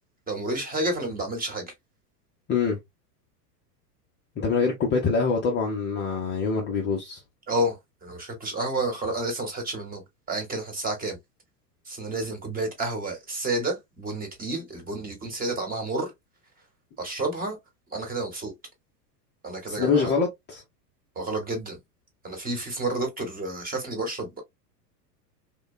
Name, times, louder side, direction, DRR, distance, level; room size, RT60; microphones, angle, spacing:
voice 1, 0.3-1.7 7.5-10.0 10.3-11.2 11.9-16.1 17.0-17.6 17.9-18.5 19.4-20.1 21.2-21.8 22.2-24.4, right 2 dB, 20° right, 1.0 m, -30 dB
voice 2, 4.4-7.2 19.7-20.6, left 5 dB, 25° left, 0.5 m, -25 dB
2.9 x 2.1 x 2.2 m
hypercardioid pair, 110°, 49 cm